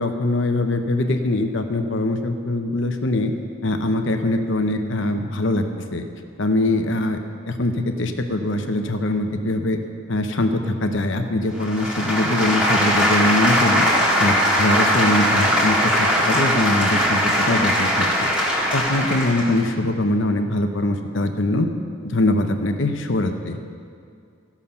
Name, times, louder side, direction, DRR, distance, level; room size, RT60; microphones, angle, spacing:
voice 1, 0.0-3.3 3.6-5.6 5.9-6.0 6.4-7.2 7.5-9.8 10.1-13.9 14.2-21.7 22.0-23.6, left 1 dB, 60° left, 6 dB, 0.8 m, -22 dB
sound 1, 11.6-19.6, equal, 5° right, 1.6 m, -20 dB
15.0 x 7.2 x 5.5 m, 2.3 s
head